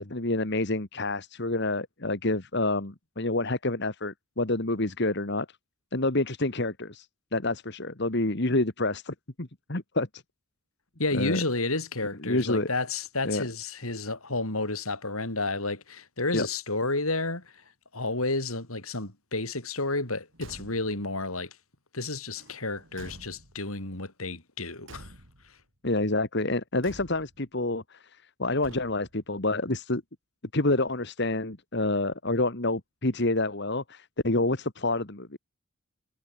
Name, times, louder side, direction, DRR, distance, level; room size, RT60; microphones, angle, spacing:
voice 1, 0.0-5.5 5.9-7.1 7.3-10.2 11.1-11.4 12.2-12.7 13.2-13.4 16.3-16.5 25.8-30.0 30.5-35.4, left 2 dB, 50° left, 2.0 m, -28 dB
voice 2, 11.0-17.4 17.9-21.5 21.9-25.1, left 2 dB, 75° left, 5.8 m, -31 dB
Car / Truck / Slam, 20.3-21.1 22.3-23.8 24.8-25.6 26.8-27.5 28.6-29.3, right 1 dB, 60° right, 4.8 m, -49 dB
head